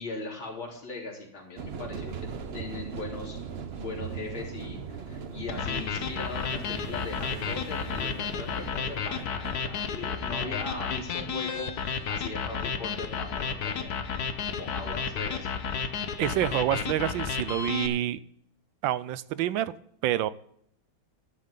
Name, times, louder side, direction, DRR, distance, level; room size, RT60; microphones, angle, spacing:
voice 1, 0.0-3.4 3.8-14.0 14.5-15.5, left 3 dB, 90° left, -1 dB, 4.3 m, -39 dB
sound 1, 1.6-15.3, right 6 dB, 45° right, 0.8 m, -41 dB
sound 2, 5.5-17.9, left 6 dB, 55° left, 1.4 m, -32 dB
voice 2, 16.2-18.2 18.8-19.7 20.0-20.3, right 12 dB, 75° right, 17 dB, 1.3 m, -27 dB
13.0 x 11.0 x 3.8 m, 0.67 s
omnidirectional pair, 2.2 m